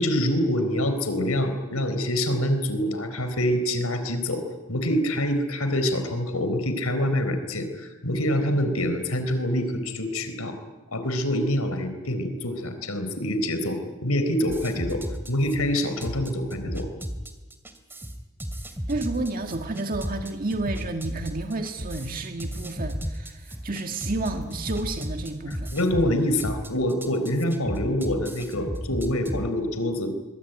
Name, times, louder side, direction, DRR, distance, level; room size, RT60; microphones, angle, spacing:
voice 1, 0.0-4.4 4.7-10.6 10.9-15.0 15.3-16.9 25.5-30.1, left 1 dB, 80° left, 8 dB, 4.2 m, -26 dB
sound 1, 14.5-29.4, equal, 10° right, 2.4 m, -34 dB
voice 2, 18.9-25.7, right 2 dB, 40° right, 4 dB, 1.8 m, -31 dB
sound 2, 19.9-20.1 20.5-20.7 21.0-22.2 22.5-22.6 22.9-23.1 23.5-23.7 24.0-24.4 24.8-24.9, equal, 80° right, 4.6 m, -37 dB
25.0 x 22.5 x 9.3 m, 1.2 s
head